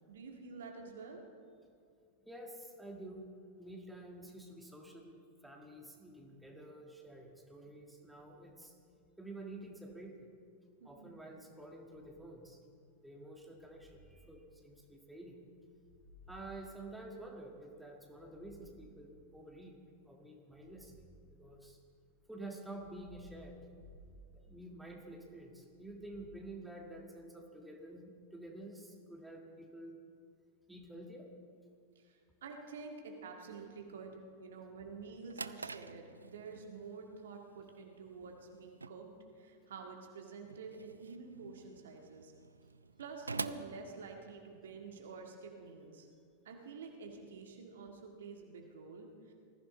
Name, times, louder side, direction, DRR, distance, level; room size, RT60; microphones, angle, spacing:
voice 1, 0.1-1.2 10.8-11.1 32.0-42.3 43.0-46.1 46.5-49.3, right 4 dB, 60° right, 2 dB, 1.8 m, -49 dB
voice 2, 2.2-3.3 3.6-8.7 9.2-10.3 10.8-12.6 13.0-15.4 16.3-21.0 21.3-21.8 22.3-23.6 24.3-29.9 30.7-31.3, right 1 dB, 5° right, 1 dB, 1.7 m, -50 dB
sound 1, 11.9-12.6 13.4-15.1 15.7-17.5 18.0-19.6 20.4-22.0 22.6-25.1 25.7-26.3, equal, 35° left, 5.1 m, -60 dB
Drawer open or close, 35.0-44.7, right 4 dB, 75° right, 0.4 m, -48 dB
20.5 x 14.5 x 4.0 m, 2.3 s
figure-of-eight pair, 90°, 0 cm